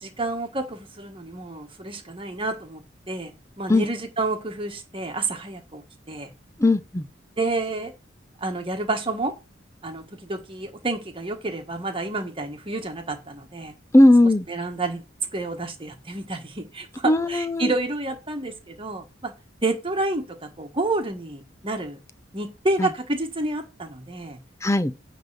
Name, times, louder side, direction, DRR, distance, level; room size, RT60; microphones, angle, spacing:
voice 1, 0.0-2.8 3.1-6.3 7.4-7.9 8.4-9.3 9.8-13.7 14.5-19.3 19.6-22.0 22.3-24.4, right 2 dB, 30° right, 1.5 m, -29 dB
voice 2, 6.6-7.1 13.9-14.5 17.0-17.7 22.8-22.9 24.6-24.9, left 1 dB, 15° left, 0.6 m, -17 dB
9.3 x 3.7 x 6.7 m
head